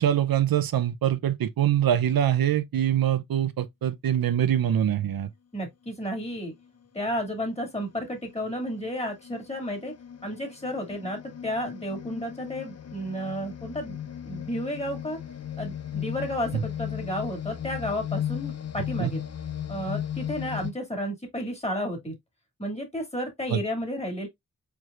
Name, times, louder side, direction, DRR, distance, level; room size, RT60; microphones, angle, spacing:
voice 1, 0.0-5.3 19.0-19.1 23.5-23.6, right 10 dB, 90° right, 0.6 m, -24 dB
voice 2, 5.5-6.5 6.9-9.9 10.2-14.0 14.2-15.2 15.6-19.2 19.7-22.2 22.6-24.3, equal, 20° left, 2.2 m, -32 dB
sound 1, 6.1-6.3 7.0-20.7, left 10 dB, 45° left, 0.7 m, -36 dB
4.8 x 4.6 x 2.4 m
wide cardioid pair, 105°, 34 cm